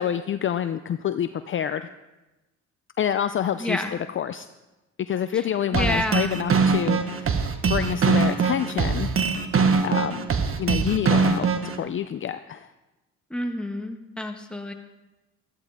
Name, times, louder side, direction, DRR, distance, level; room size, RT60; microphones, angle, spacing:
voice 1, 0.0-1.9 3.0-4.5 5.1-7.3 7.7-9.1 9.8-12.7, left 9 dB, 40° left, 11 dB, 0.5 m, -27 dB
voice 2, 3.6-3.9 5.3-6.4 13.3-14.7, left 1 dB, 5° left, 3 dB, 1.5 m, -29 dB
sound 1, 5.7-11.8, right 5 dB, 45° right, 1.2 m, -22 dB
13.5 x 13.5 x 3.6 m, 1.1 s
cardioid pair, 90°, 30 cm